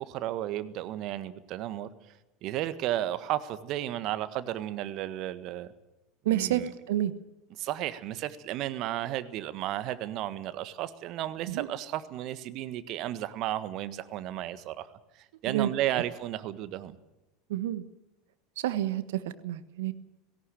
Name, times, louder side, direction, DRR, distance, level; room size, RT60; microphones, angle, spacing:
voice 1, 0.0-1.9 2.4-5.7 6.3-6.7 7.6-14.9 15.2-17.0, right 13 dB, 50° right, 13 dB, 1.6 m, -33 dB
voice 2, 6.2-7.1 11.5-11.7 15.5-15.7 17.5-17.8 18.6-19.9, right 12 dB, 70° right, 14 dB, 1.3 m, -29 dB
18.0 x 17.5 x 9.1 m, 0.98 s
figure-of-eight pair, 80°, 0 cm